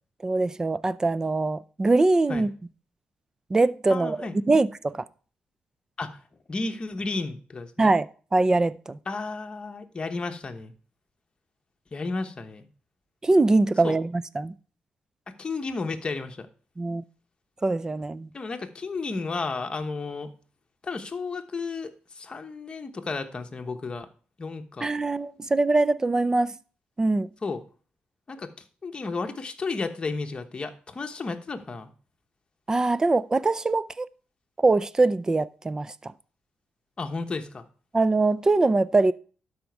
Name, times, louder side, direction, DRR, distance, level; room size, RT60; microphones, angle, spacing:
voice 1, 0.2-2.5 3.5-5.0 7.8-9.0 13.2-14.5 16.8-17.0 17.6-18.3 24.8-26.5 27.0-27.3 32.7-34.1 34.6-36.1 37.9-39.1, right 3 dB, 20° right, 0.4 m, -23 dB
voice 2, 3.9-4.4 6.0-6.2 6.5-7.9 9.1-10.7 11.9-12.7 13.8-14.0 15.3-16.5 18.3-20.3 20.8-24.1 24.4-24.9 27.4-27.6 28.3-28.5 28.8-31.9 37.0-37.7, left 3 dB, 30° left, 1.0 m, -33 dB
12.5 x 5.1 x 4.6 m
cardioid pair, 125°, 3 cm